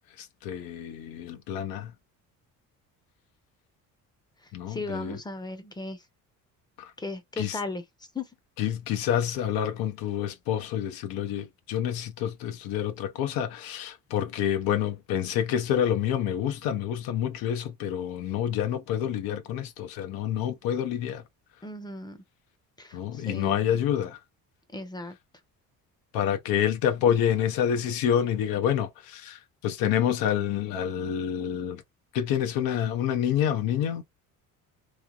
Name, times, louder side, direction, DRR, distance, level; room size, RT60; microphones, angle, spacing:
voice 1, 0.2-1.9 4.5-5.2 6.8-6.9 7.4-7.6 8.6-21.2 22.9-24.2 26.1-31.8 32.1-34.0, left 9 dB, 85° left, 0.7 m, -28 dB
voice 2, 4.4-6.0 7.0-7.8 8.1-8.3 21.6-22.2 22.8-23.6 24.7-25.2, left 2 dB, 10° left, 0.6 m, -36 dB
3.1 x 2.4 x 2.3 m
cardioid pair, 120°, 34 cm